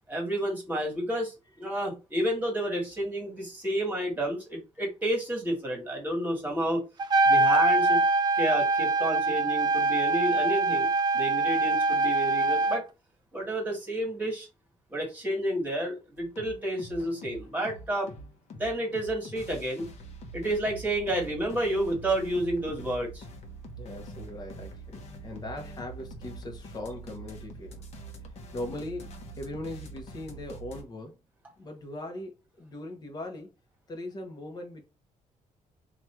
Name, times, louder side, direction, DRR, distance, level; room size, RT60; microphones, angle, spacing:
voice 1, 0.1-6.8 7.2-8.0 8.3-12.8 13.3-14.5 14.9-18.1 18.5-19.9 20.3-23.2, right 1 dB, 15° right, 1.6 m, -30 dB
Trumpet, 7.0-12.8, right 3 dB, 35° right, 0.4 m, -24 dB
sound 1, 16.2-30.8, right 2 dB, 60° left, 0.8 m, -44 dB
voice 2, 23.8-27.9 28.5-31.2 31.6-33.5 33.9-34.8, left 1 dB, 30° left, 1.0 m, -40 dB
3.0 x 2.5 x 4.4 m
cardioid pair, 145°, 13 cm